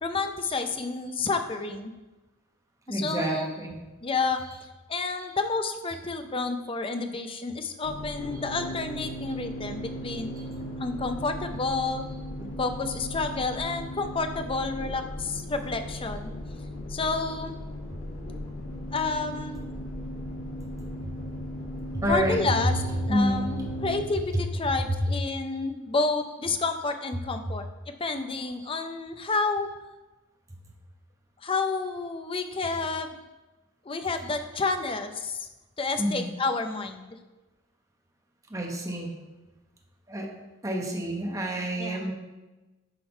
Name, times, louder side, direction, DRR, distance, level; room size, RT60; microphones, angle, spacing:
voice 1, 0.0-1.9 2.9-3.5 4.0-10.3 10.8-12.0 12.6-16.3 16.9-17.6 18.9-19.6 22.1-22.7 23.1-27.7 28.0-29.7 31.4-33.2 33.8-35.5 35.8-37.2 41.8-42.1, left 3 dB, 25° left, 7 dB, 0.6 m, -30 dB
voice 2, 2.9-3.8 12.4-12.5 21.0-21.1 21.9-22.4 23.1-23.5 25.0-25.1 36.0-36.3 38.5-39.2 40.1-40.3 40.6-42.1, equal, 15° right, 0 dB, 1.1 m, -28 dB
sound 1, 7.8-24.0, equal, 75° left, 1.9 m, -37 dB
11.0 x 3.8 x 4.4 m, 1.1 s
head